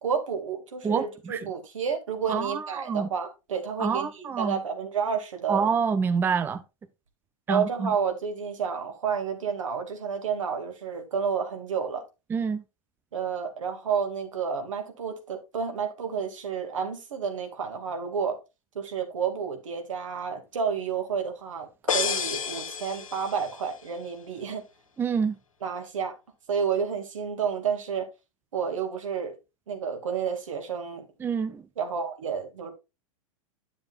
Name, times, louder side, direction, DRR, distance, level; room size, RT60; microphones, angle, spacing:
voice 1, 0.0-5.7 7.5-12.0 13.1-18.4 18.7-24.6 25.6-26.2 26.5-28.1 28.5-29.3 29.7-31.1 31.8-32.7, right 6 dB, 70° right, 2.2 m, -30 dB
voice 2, 0.8-1.4 2.3-3.1 3.8-4.6 5.5-6.6 7.5-7.9 12.3-12.6 25.0-25.4 31.2-31.6, right 6 dB, 10° right, 0.5 m, -27 dB
sound 1, 21.9-23.7, left 6 dB, 75° left, 1.0 m, -30 dB
10.5 x 7.1 x 2.4 m
figure-of-eight pair, 100°, 17 cm